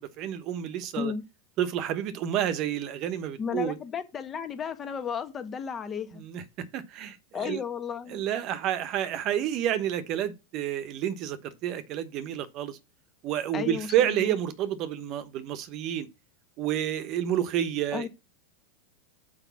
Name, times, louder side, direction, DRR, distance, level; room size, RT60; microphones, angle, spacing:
voice 1, 0.2-1.1 1.6-3.8 6.1-6.4 6.7-7.6 8.1-12.8 13.2-16.1 16.6-18.1, right 10 dB, 45° right, 1.1 m, -29 dB
voice 2, 3.4-6.2 7.3-8.3 13.5-14.3 17.9-18.1, left 7 dB, 25° left, 1.3 m, -34 dB
6.2 x 5.3 x 6.9 m
supercardioid pair, 130°, 0 cm